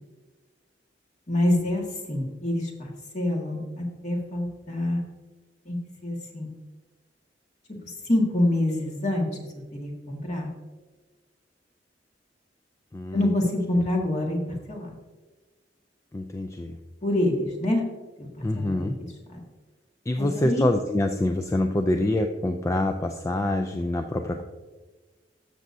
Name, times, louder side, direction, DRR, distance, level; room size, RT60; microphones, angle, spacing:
voice 1, 1.3-2.9 3.1-5.0 5.7-6.5 8.1-9.3 9.7-10.5 13.1-14.4 14.7-14.9 17.0-17.8 18.2-18.9 19.3-19.4 20.2-20.7, left 1 dB, 40° left, 0 dB, 1.8 m, -26 dB
voice 2, 12.9-13.3 16.1-16.8 18.4-19.0 20.1-24.4, left 1 dB, 15° left, 5 dB, 0.4 m, -26 dB
13.5 x 6.6 x 2.7 m, 1.3 s
head